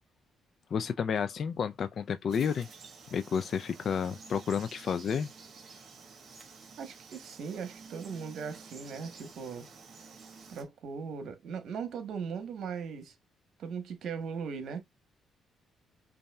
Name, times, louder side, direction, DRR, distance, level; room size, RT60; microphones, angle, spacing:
voice 1, 0.7-2.7 3.1-5.3, left 7 dB, 55° left, 0.4 m, -31 dB
Frog, 2.3-10.6, right 5 dB, 50° right, 1.8 m, -51 dB
voice 2, 6.8-9.7 10.5-13.1 13.6-14.8, right 6 dB, 70° right, 1.1 m, -39 dB
5.4 x 2.6 x 2.3 m
cardioid pair, 90°, 0 cm